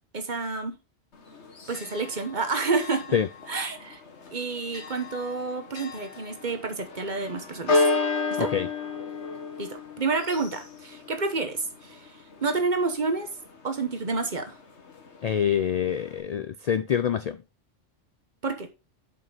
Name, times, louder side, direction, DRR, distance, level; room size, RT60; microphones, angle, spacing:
voice 1, 0.1-0.8 1.7-3.2 3.5-4.0 4.3-7.8 8.4-8.5 9.6-13.3 13.6-14.5 18.4-18.7, right 4 dB, 45° right, 1.2 m, -29 dB
Church bell, 1.1-16.2, left 3 dB, 85° left, 1.7 m, -33 dB
voice 2, 8.4-8.7 15.2-17.4, left 8 dB, 60° left, 0.4 m, -26 dB
7.6 x 5.3 x 4.0 m
omnidirectional pair, 1.1 m